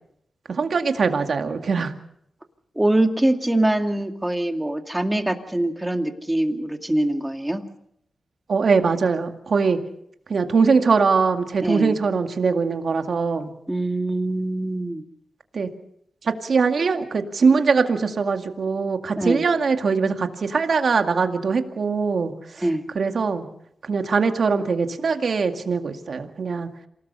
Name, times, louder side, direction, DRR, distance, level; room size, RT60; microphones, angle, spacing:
voice 1, 0.5-1.9 8.5-9.8 10.3-13.5 15.5-15.7 16.2-22.6 23.0-23.5 23.8-26.7, right 5 dB, 65° right, 6 dB, 2.1 m, -22 dB
voice 2, 2.8-7.6 11.6-12.0 13.7-15.0 19.2-19.4 22.6-22.8, right 1 dB, 10° right, 5 dB, 2.4 m, -23 dB
27.5 x 18.5 x 5.6 m, 0.72 s
cardioid pair, 75°, 0 cm